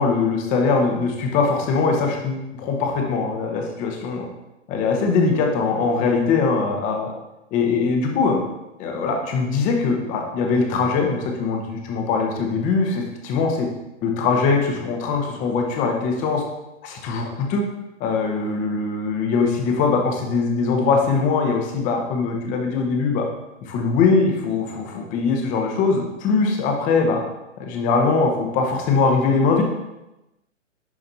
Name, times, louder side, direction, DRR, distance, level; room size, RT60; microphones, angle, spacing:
voice 1, 0.0-4.3 4.7-7.1 7.5-8.4 8.8-13.7 14.0-16.4 16.8-17.7 18.0-23.3 23.7-27.2 27.6-29.6, left 4 dB, 20° left, 2 dB, 1.0 m, -21 dB
10.5 x 4.9 x 2.7 m, 0.96 s
figure-of-eight pair, 120°, 37 cm